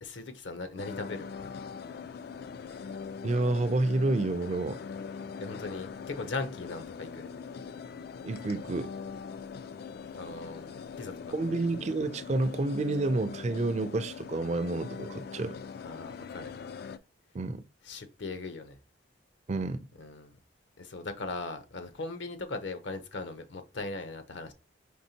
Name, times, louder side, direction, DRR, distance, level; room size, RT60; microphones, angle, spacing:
voice 1, 0.0-1.3 5.4-7.3 10.1-11.3 15.8-16.5 17.8-18.8 20.0-20.4 20.8-24.5, left 3 dB, 70° left, 0.7 m, -39 dB
sound 1, 0.8-17.0, left 6 dB, 55° left, 0.3 m, -42 dB
voice 2, 3.2-4.8 8.2-8.9 11.3-15.6 17.3-17.6 19.5-19.8, right 2 dB, 35° right, 0.4 m, -29 dB
5.3 x 3.4 x 2.8 m
head